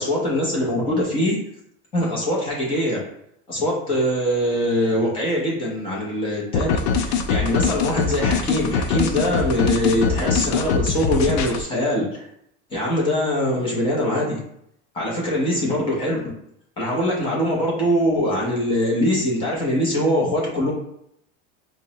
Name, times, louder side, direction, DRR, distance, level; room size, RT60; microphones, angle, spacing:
voice 1, 0.0-1.4 1.9-3.0 3.5-12.2 12.7-14.4 14.9-16.2 16.8-20.7, left 1 dB, 15° left, -4 dB, 0.5 m, -22 dB
sound 1, 6.5-11.6, left 5 dB, 70° left, 0.5 m, -23 dB
4.7 x 2.1 x 2.7 m, 0.73 s
supercardioid pair, 175°, 34 cm